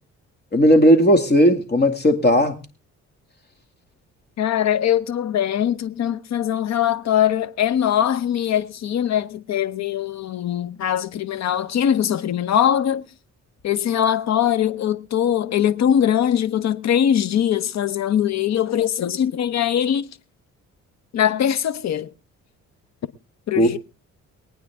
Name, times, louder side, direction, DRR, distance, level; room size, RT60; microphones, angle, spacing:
voice 1, 0.5-2.5 23.6-23.8, equal, 35° left, 2.3 m, -16 dB
voice 2, 4.4-13.1 13.6-20.1 21.1-22.1 23.5-23.8, left 10 dB, 60° left, 0.9 m, -21 dB
23.0 x 9.1 x 3.6 m
cardioid pair, 90°, 30 cm